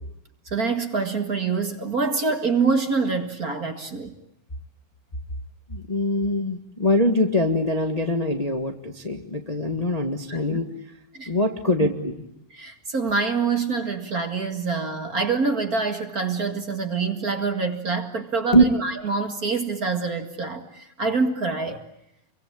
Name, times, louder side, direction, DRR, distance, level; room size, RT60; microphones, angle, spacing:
voice 1, 0.5-4.1 10.3-10.6 11.1-11.3 11.8-11.9 12.5-21.8, right 4 dB, 35° right, 7 dB, 1.8 m, -26 dB
voice 2, 5.7-10.7 11.3-12.1 18.5-18.7, left 1 dB, 60° left, 5 dB, 0.4 m, -23 dB
29.0 x 24.0 x 8.7 m, 0.83 s
omnidirectional pair, 4.0 m